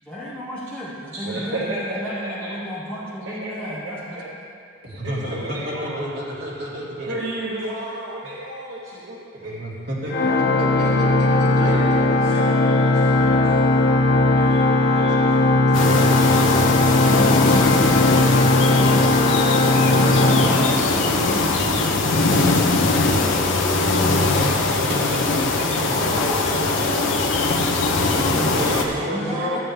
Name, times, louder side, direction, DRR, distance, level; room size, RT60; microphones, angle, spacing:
voice 1, 0.1-4.4 18.7-19.9 20.3-23.4 25.9-27.0 28.2-29.6, equal, 5° left, -8 dB, 1.3 m, -34 dB
voice 2, 1.2-2.6 3.2-4.3 5.0-6.0 7.0-9.6 10.0-10.4 10.7-10.8 11.5-15.4 16.1-16.9 19.8-20.6 24.3-27.7 28.5-29.6, right 1 dB, 80° right, -6 dB, 1.1 m, -33 dB
voice 3, 4.8-7.2 9.3-12.4 15.7-16.1 21.4-21.5 24.9-26.3 28.1-29.6, equal, 55° right, -6 dB, 2.3 m, -31 dB
Organ, 10.1-21.3, left 2 dB, 50° left, 0.6 m, -18 dB
sound 1, 15.7-28.8, left 3 dB, 80° left, 0.9 m, -21 dB
13.0 x 8.7 x 3.4 m, 2.4 s
head